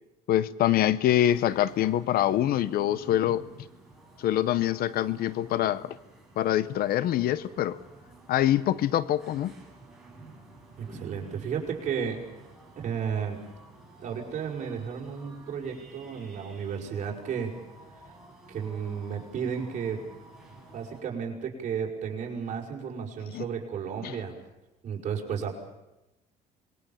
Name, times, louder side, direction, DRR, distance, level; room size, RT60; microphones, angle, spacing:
voice 1, 0.3-3.4 4.2-6.0 6.4-7.8 8.3-9.5 23.3-23.4 24.0-24.2, left 12 dB, 65° left, 18 dB, 0.9 m, -25 dB
sound 1, 1.1-21.0, right 2 dB, ahead, 7.5 m, -51 dB
voice 2, 10.8-12.3 12.8-13.4 14.0-17.5 18.5-20.0 20.7-24.3 24.8-25.5, right 7 dB, 45° right, 0 dB, 5.6 m, -33 dB
26.5 x 21.5 x 7.2 m, 0.97 s
cardioid pair, 115°, 17 cm